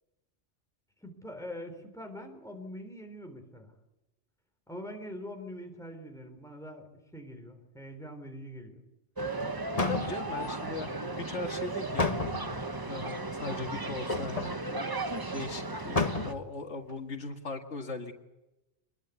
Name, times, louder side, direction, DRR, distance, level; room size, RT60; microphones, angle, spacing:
voice 1, 1.0-3.7 4.7-6.9 7.1-8.8 13.5-13.7, equal, 5° left, 4 dB, 3.8 m, -43 dB
sound 1, 9.2-16.3, right 2 dB, 20° right, 1.1 m, -35 dB
sound 2, 9.4-9.5 9.8-10.5 12.0-12.7 14.1-14.6 15.1-15.2 15.4-15.5 16.0-16.5 16.9-17.0, left 3 dB, 35° left, 1.4 m, -31 dB
voice 2, 9.7-12.3 12.9-15.0 15.3-18.2, left 3 dB, 80° left, 4 dB, 2.1 m, -39 dB
25.0 x 21.0 x 8.2 m, 0.99 s
omnidirectional pair, 1.2 m